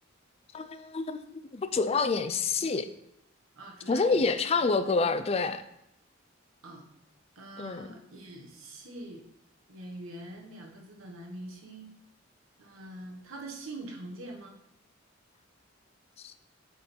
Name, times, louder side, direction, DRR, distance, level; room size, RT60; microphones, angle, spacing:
voice 1, 0.5-2.9 3.9-5.6 7.6-7.9 16.2-16.3, left 4 dB, 30° left, 11 dB, 0.4 m, -28 dB
voice 2, 3.5-4.2 4.6-4.7 6.6-6.9 7.3-9.2 9.7-11.9 12.6-14.6, right 2 dB, 85° right, 0 dB, 1.3 m, -44 dB
7.2 x 3.9 x 4.4 m, 0.80 s
head